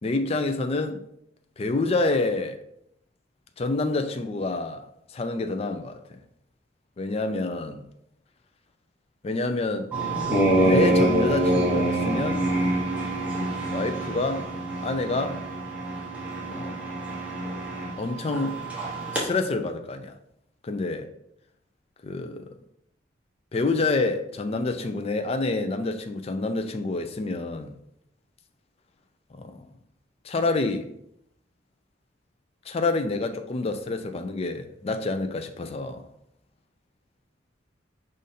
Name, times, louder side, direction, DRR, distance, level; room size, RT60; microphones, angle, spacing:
voice 1, 0.0-1.0 1.6-2.6 3.6-4.8 5.1-6.0 7.0-7.8 9.2-9.9 10.6-12.5 13.7-14.5 14.8-15.4 16.5-16.9 18.0-18.6 19.1-20.1 20.6-21.1 22.0-22.5 23.5-27.7 29.3-29.6 30.2-30.9 32.7-36.1, left 3 dB, 30° left, 0.4 m, -27 dB
sound 1, 9.9-19.2, right 1 dB, 5° right, 0.9 m, -26 dB
5.1 x 2.6 x 4.1 m
head